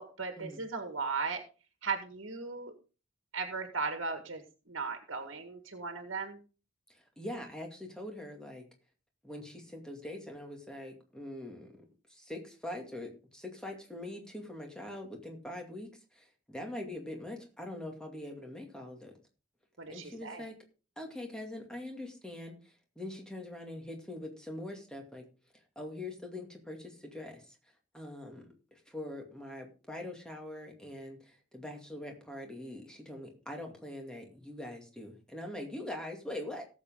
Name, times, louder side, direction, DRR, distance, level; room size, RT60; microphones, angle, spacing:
voice 1, 0.0-1.4 1.8-2.7 3.3-6.4 19.8-20.4, right 4 dB, 80° right, 6 dB, 1.7 m, -37 dB
voice 2, 6.9-8.6 9.2-19.1 19.9-20.5 21.0-25.2 25.8-27.6 27.9-36.6, left 1 dB, 5° left, 2 dB, 2.3 m, -43 dB
17.5 x 7.6 x 3.8 m, 0.34 s
head